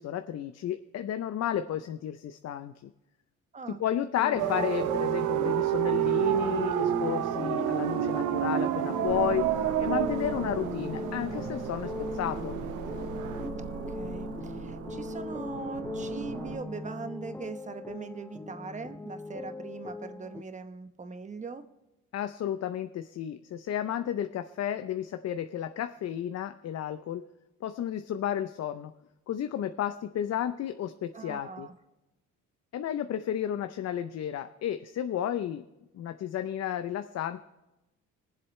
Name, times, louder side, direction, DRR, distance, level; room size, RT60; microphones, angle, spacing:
voice 1, 0.0-2.9 3.7-9.4 9.8-12.6 22.1-27.2 27.6-28.9 29.3-31.7 32.7-35.6 35.9-37.4, left 10 dB, 55° left, 9 dB, 0.6 m, -32 dB
sound 1, 4.2-20.4, left 2 dB, 5° left, 0.3 m, -39 dB
sound 2, 4.4-13.5, right 13 dB, 85° right, 0.6 m, -30 dB
sound 3, 9.1-16.6, right 6 dB, 50° right, 0.9 m, -40 dB
voice 2, 13.7-21.6 31.1-31.7, right 4 dB, 25° right, 9 dB, 0.9 m, -41 dB
22.0 x 7.7 x 3.2 m, 0.99 s
cardioid pair, 90°, 30 cm